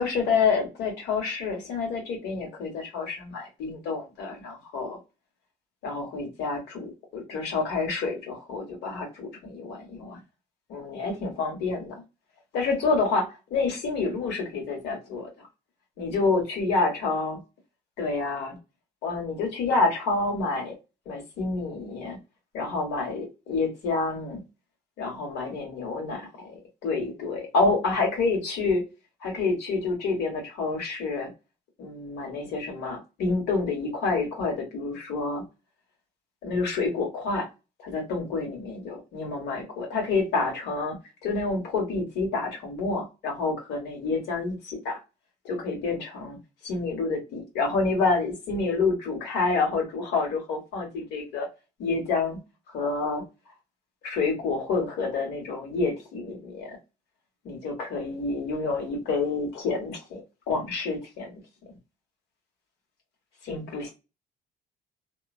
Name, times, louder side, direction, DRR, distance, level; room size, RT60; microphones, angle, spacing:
voice 1, 0.0-5.0 5.8-10.2 10.7-12.0 12.5-15.3 16.0-17.4 18.0-18.6 19.0-20.7 21.0-22.2 22.5-24.4 25.0-28.8 29.2-31.3 31.8-35.5 36.4-37.5 37.8-45.0 45.4-46.4 46.6-51.5 51.8-52.4 52.7-53.2 54.0-56.8 57.4-60.2 60.5-61.4 63.4-63.9, left 3 dB, 85° left, 1.5 m, -28 dB
2.8 x 2.3 x 2.4 m
cardioid pair, 110°, 17 cm